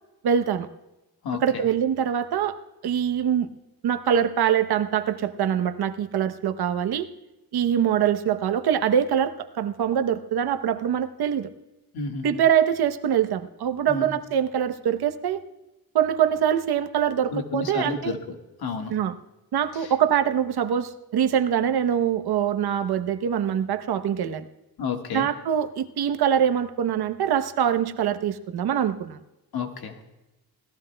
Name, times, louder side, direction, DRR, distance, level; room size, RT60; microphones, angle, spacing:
voice 1, 0.2-0.7 1.4-2.5 2.8-3.5 3.8-7.1 7.5-11.5 12.2-15.4 15.9-18.1 18.9-19.1 19.5-24.5 25.1-29.2, right 9 dB, 90° right, 10 dB, 0.9 m, -24 dB
voice 2, 1.2-1.7 11.9-12.4 13.9-14.1 17.3-18.9 19.7-19.9 24.8-25.3 29.5-30.0, left 5 dB, 85° left, 3 dB, 1.6 m, -31 dB
24.0 x 17.0 x 2.2 m, 0.97 s
cardioid pair, 100°, 37 cm